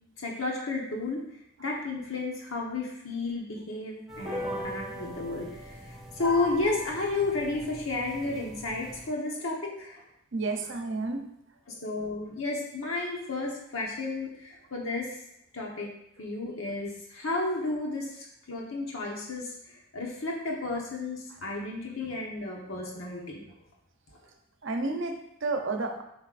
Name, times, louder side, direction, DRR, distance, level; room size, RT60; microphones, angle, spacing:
voice 1, 0.2-1.2 1.6-10.0 11.7-15.2 15.5-15.9 16.2-23.5, left 3 dB, 80° left, -1 dB, 1.2 m, -32 dB
sound 1, 4.1-9.1, right 1 dB, ahead, 0.9 m, -39 dB
voice 2, 10.3-11.8 21.3-21.4 24.2-24.3 24.6-26.0, right 3 dB, 65° right, 5 dB, 0.7 m, -32 dB
7.3 x 5.4 x 2.5 m, 0.79 s
head